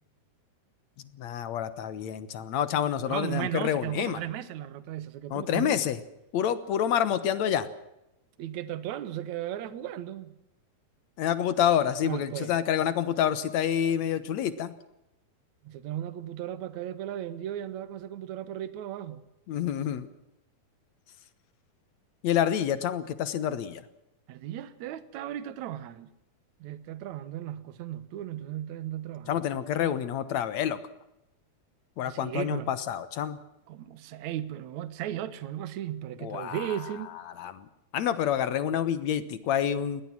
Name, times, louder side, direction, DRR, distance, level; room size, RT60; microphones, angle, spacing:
voice 1, 1.2-4.2 5.3-6.0 6.3-7.7 11.2-14.7 19.5-20.1 22.2-23.8 29.3-30.8 32.0-33.4 36.2-36.8 37.4-37.7 37.9-40.0, left 9 dB, 60° left, 2.1 m, -28 dB
voice 2, 3.1-5.8 8.4-10.3 12.0-12.5 15.6-19.2 24.3-26.1 26.6-29.4 32.1-32.7 33.7-37.1, right 11 dB, 65° right, 2.3 m, -36 dB
20.5 x 18.5 x 7.4 m
omnidirectional pair, 4.1 m